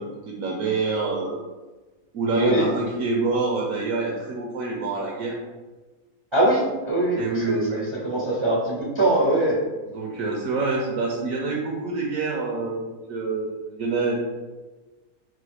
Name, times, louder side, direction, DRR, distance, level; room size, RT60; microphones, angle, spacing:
voice 1, 0.0-1.4 2.1-5.4 7.2-7.9 9.8-12.8 13.1-14.1, right 3 dB, 65° right, -1 dB, 0.9 m, -26 dB
voice 2, 2.3-2.7 6.3-9.6, right 1 dB, 35° right, -6 dB, 0.5 m, -22 dB
3.8 x 2.9 x 3.3 m, 1.2 s
omnidirectional pair, 1.7 m